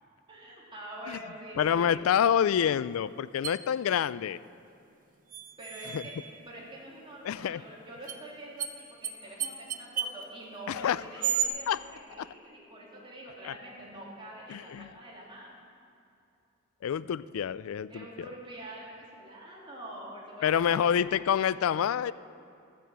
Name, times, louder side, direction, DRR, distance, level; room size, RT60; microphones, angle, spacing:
voice 1, 0.3-2.0 5.6-6.1 6.4-15.5 17.9-21.0 21.5-21.9, right 1 dB, 25° right, -6 dB, 3.4 m, -45 dB
voice 2, 1.6-4.4 5.9-6.0 7.2-7.6 10.7-11.0 11.7-11.8 12.2-12.3 13.4-13.5 14.5-14.9 16.8-18.1 20.4-22.1, left 8 dB, 75° left, 18 dB, 0.3 m, -27 dB
sound 1, 3.4-3.6 5.3-6.3 8.1-8.2 8.6-8.7 9.0-9.1 9.4-10.2 11.2-11.5, right 8 dB, 40° right, 0.7 m, -32 dB
13.5 x 7.5 x 8.1 m, 2.6 s
head